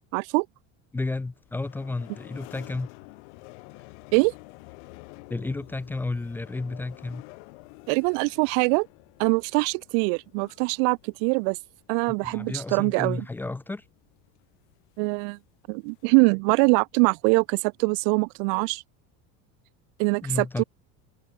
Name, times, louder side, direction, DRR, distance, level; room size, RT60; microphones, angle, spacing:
voice 1, 0.1-0.5 4.1-4.3 7.9-8.9 9.2-11.6 11.9-13.2 15.0-15.4 15.7-18.8 20.0-20.6, right 40 dB or more, 65° right, 0.5 m, -23 dB
voice 2, 0.9-2.9 5.3-7.2 12.1-13.8 20.2-20.6, left 3 dB, 5° left, 0.6 m, -32 dB
sound 1, 1.1-16.0, left 32 dB, 80° left, 1.9 m, -50 dB
cardioid pair, 180°, 34 cm